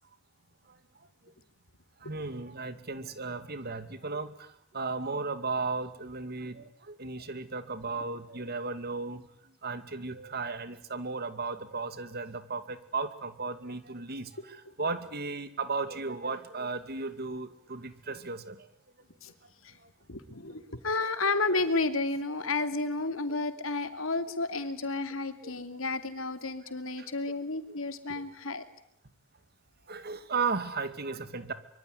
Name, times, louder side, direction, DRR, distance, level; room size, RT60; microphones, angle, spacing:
voice 1, 2.0-18.7 19.8-19.9 20.5-20.6 25.4-25.5 27.0-27.1 28.1-28.2 29.9-31.5, right 4 dB, 50° right, 12 dB, 2.5 m, -35 dB
voice 2, 20.1-28.7, left 3 dB, 85° left, 10 dB, 2.8 m, -31 dB
25.0 x 24.0 x 9.8 m, 0.73 s
head